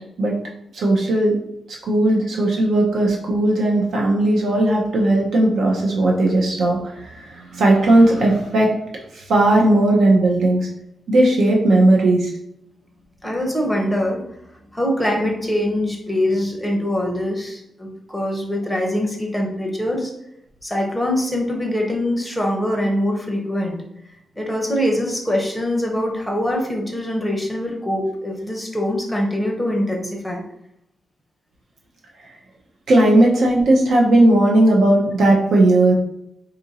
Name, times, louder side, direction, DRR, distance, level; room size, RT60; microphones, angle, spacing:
voice 1, 0.7-1.4 1.7-10.6 11.1-12.3 32.9-35.9, right 1 dB, 70° right, -1 dB, 0.6 m, -16 dB
voice 2, 13.2-14.2 14.7-20.1 20.6-23.8 24.4-30.4, left 1 dB, ahead, 0 dB, 0.6 m, -23 dB
2.8 x 2.5 x 4.0 m, 0.79 s
wide cardioid pair, 155°, 0 cm